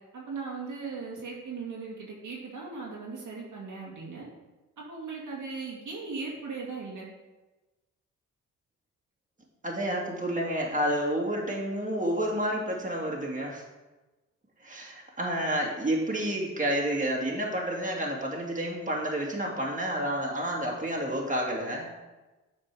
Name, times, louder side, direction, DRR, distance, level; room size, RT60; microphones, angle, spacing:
voice 1, 0.1-4.3 4.8-7.1, right 4 dB, 60° right, -3 dB, 2.0 m, -38 dB
voice 2, 9.6-13.6 14.6-21.9, right 1 dB, 25° right, -2 dB, 2.1 m, -30 dB
7.7 x 4.4 x 4.8 m, 1.1 s
supercardioid pair, 50°, 34 cm